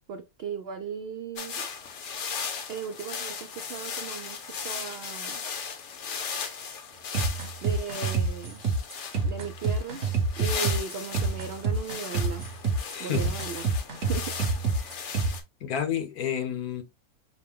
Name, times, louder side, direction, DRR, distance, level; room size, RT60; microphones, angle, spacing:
voice 1, 0.0-1.5 2.7-5.4 7.6-8.6 9.2-10.0 10.4-12.5 13.0-13.7 14.0-14.4, right 6 dB, 90° right, 0.5 m, -37 dB
sound 1, 1.4-15.4, left 6 dB, 55° left, 1.0 m, -37 dB
sound 2, 7.1-15.4, right 4 dB, 50° right, 1.3 m, -27 dB
voice 2, 12.9-13.4 14.8-15.0 15.6-16.8, left 9 dB, 75° left, 1.4 m, -30 dB
5.9 x 2.2 x 3.6 m
omnidirectional pair, 1.6 m